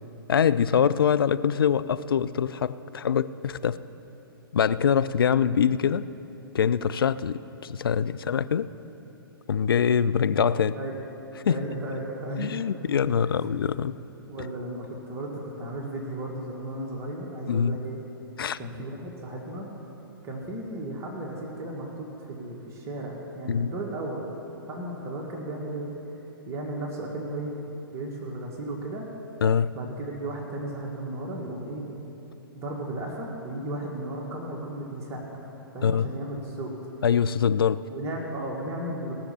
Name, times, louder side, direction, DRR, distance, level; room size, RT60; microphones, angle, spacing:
voice 1, 0.3-3.8 4.5-6.0 6.5-8.7 9.5-10.8 11.5-11.6 12.4-13.9 17.5-17.8 18.4-18.6 23.5-23.7 29.4-29.7 35.8-36.1 37.0-37.8, left 7 dB, 70° left, 14 dB, 0.4 m, -24 dB
voice 2, 11.5-12.6 13.2-13.3 14.3-18.0 18.6-19.7 20.2-24.2 24.7-25.9 26.5-27.5 27.9-29.1 29.8-31.9 32.5-35.5 35.7-36.7 37.9-39.1, right 1 dB, 25° right, -2 dB, 1.8 m, -35 dB
17.5 x 6.5 x 7.1 m, 3.0 s
figure-of-eight pair, 115°, 12 cm